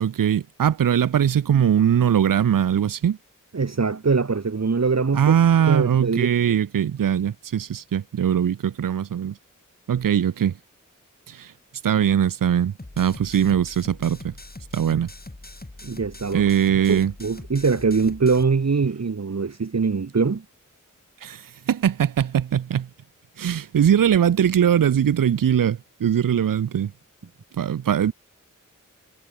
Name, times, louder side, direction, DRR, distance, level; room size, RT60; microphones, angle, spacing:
voice 1, 0.0-3.2 5.1-9.4 9.9-10.5 11.3-11.5 11.8-14.3 14.7-15.1 16.3-17.1 21.2-22.9 23.4-26.9 27.6-28.1, right 9 dB, 80° right, 0.5 m, -21 dB
voice 2, 3.5-5.3 5.7-6.4 15.8-16.4 16.9-20.4, right 4 dB, 55° right, 0.9 m, -22 dB
sound 1, 12.8-18.4, left 2 dB, 30° left, 2.2 m, -41 dB
wide cardioid pair, 50°, 32 cm